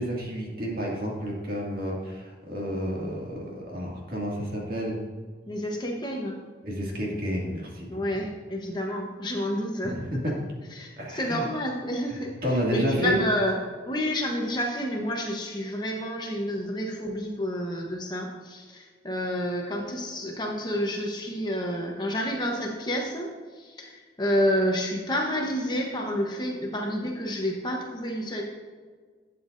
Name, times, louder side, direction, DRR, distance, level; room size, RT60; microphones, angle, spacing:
voice 1, 0.0-5.0 6.6-8.2 9.8-10.3 11.0-11.4 12.4-13.2, equal, 50° right, -3 dB, 2.3 m, -30 dB
voice 2, 5.5-6.3 7.9-10.2 10.7-12.3 12.7-13.5 13.9-28.4, equal, 25° left, 0 dB, 1.0 m, -29 dB
12.0 x 8.3 x 2.6 m, 1.6 s
head